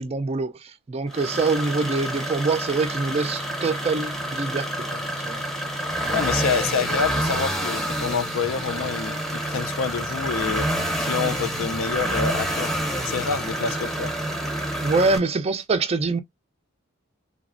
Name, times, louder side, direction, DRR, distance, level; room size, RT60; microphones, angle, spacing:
voice 1, 0.0-5.4 14.8-16.2, right 3 dB, 30° right, 0.3 m, -25 dB
sound 1, 1.1-15.2, right 1 dB, ahead, 0.7 m, -28 dB
voice 2, 6.1-10.7 11.0-12.8 13.0-14.1, left 6 dB, 70° left, 0.4 m, -27 dB
3.3 x 2.0 x 2.4 m
head